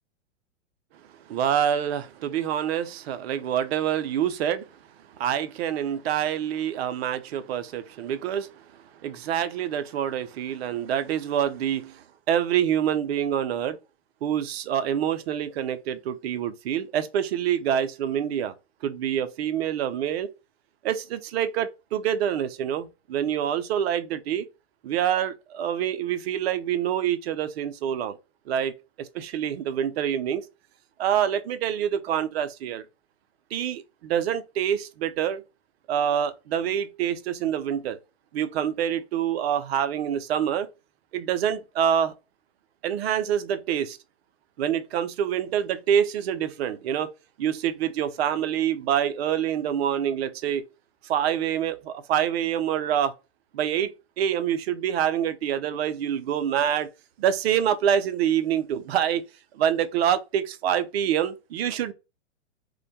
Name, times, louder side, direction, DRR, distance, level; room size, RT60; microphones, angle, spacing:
voice 1, 1.3-4.7 5.2-13.8 14.2-18.5 18.8-20.3 20.8-24.4 24.8-28.2 28.5-30.4 31.0-32.8 33.5-35.4 35.9-38.0 38.3-40.7 41.1-42.1 42.8-44.0 44.6-47.1 47.4-50.6 51.0-53.1 53.5-56.9 57.2-59.2 59.5-61.9, right 9 dB, 60° right, 0.5 m, -26 dB
2.1 x 2.1 x 2.7 m
hypercardioid pair, 125°, 36 cm